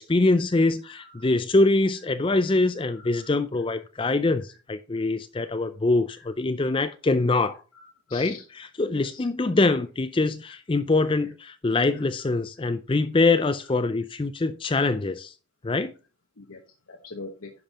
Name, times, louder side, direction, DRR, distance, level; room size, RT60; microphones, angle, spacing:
voice 1, 0.0-7.6 8.1-15.3 15.6-15.9, left 2 dB, 25° left, 0.4 m, -24 dB
voice 2, 0.9-1.3 2.9-3.3 6.2-6.3 7.7-8.4 8.8-9.3 10.5-10.6 11.9-12.3 16.4-16.6 16.9-17.5, left 4 dB, 90° left, 1.2 m, -43 dB
10.5 x 5.4 x 4.2 m
head